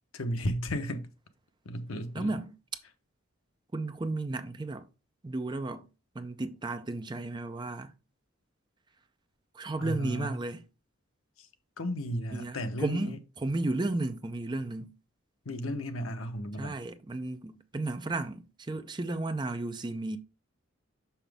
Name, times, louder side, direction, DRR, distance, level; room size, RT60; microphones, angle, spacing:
voice 1, 0.1-1.1 1.6-2.3 9.8-10.3 11.4-11.5 11.8-13.2 15.4-16.8, equal, 75° left, 0.8 m, -34 dB
voice 2, 2.1-2.5 3.7-4.9 5.2-5.9 6.2-7.9 9.5-10.6 12.3-14.9 16.6-20.2, right 2 dB, 20° right, 0.4 m, -33 dB
5.9 x 5.7 x 3.4 m
head